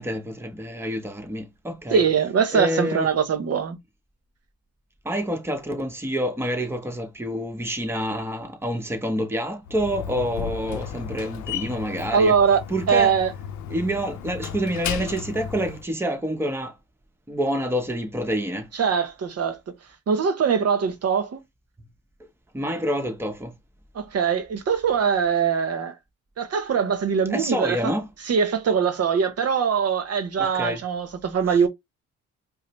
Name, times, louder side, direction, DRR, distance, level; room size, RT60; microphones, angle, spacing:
voice 1, 0.0-2.0 2.5-3.1 5.0-12.4 12.7-13.2 13.7-16.8 17.3-18.7 22.5-23.6 27.3-28.1 30.4-30.8, equal, 10° right, 0.9 m, -27 dB
voice 2, 1.9-3.8 12.1-12.6 12.9-13.3 18.7-19.6 20.1-21.4 23.9-25.9 26.4-27.9 28.3-31.7, right 6 dB, 55° right, 0.8 m, -22 dB
Slam, 9.6-15.8, left 8 dB, 70° left, 0.6 m, -34 dB
4.9 x 2.0 x 3.0 m
cardioid pair, 90°, 30 cm